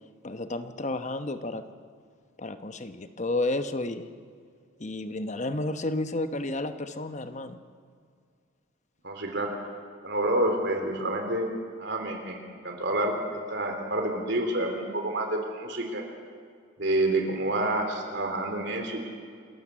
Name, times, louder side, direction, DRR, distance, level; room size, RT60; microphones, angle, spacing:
voice 1, 0.2-1.6 2.4-4.1 4.8-7.6, left 2 dB, 35° left, 9 dB, 1.0 m, -31 dB
voice 2, 9.0-9.5 10.0-11.5 11.8-12.4 12.6-16.0 16.8-19.0, right 1 dB, 60° right, 3 dB, 3.5 m, -28 dB
28.5 x 13.5 x 7.5 m, 2.2 s
head